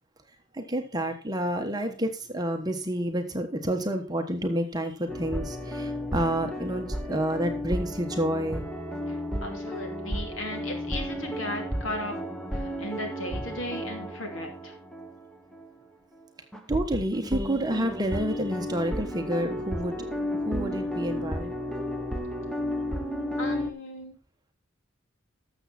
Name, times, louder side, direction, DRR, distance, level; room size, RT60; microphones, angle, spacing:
voice 1, 0.5-8.6 16.7-20.0 20.3-21.5 22.8-22.9, right 1 dB, 20° right, 5 dB, 1.2 m, -29 dB
sound 1, 5.1-15.3 15.5-15.7 16.5-23.7, equal, 5° left, 1.1 m, -33 dB
voice 2, 9.4-12.1 12.5-14.7 23.4-24.2, left 1 dB, 65° left, 3 dB, 2.8 m, -36 dB
12.5 x 7.2 x 4.2 m, 0.36 s
head